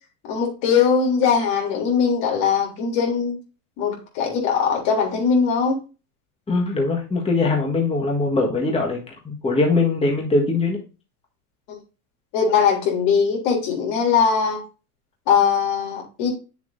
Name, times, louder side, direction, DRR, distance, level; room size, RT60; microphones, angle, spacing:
voice 1, 0.3-3.4 3.8-5.8 11.7-11.8 12.3-14.6 15.3-16.3, left 6 dB, 60° left, 3.4 m, -20 dB
voice 2, 6.5-9.0 9.2-10.8, left 3 dB, 15° left, 1.6 m, -21 dB
8.5 x 7.1 x 2.7 m
supercardioid pair, 110°, 46 cm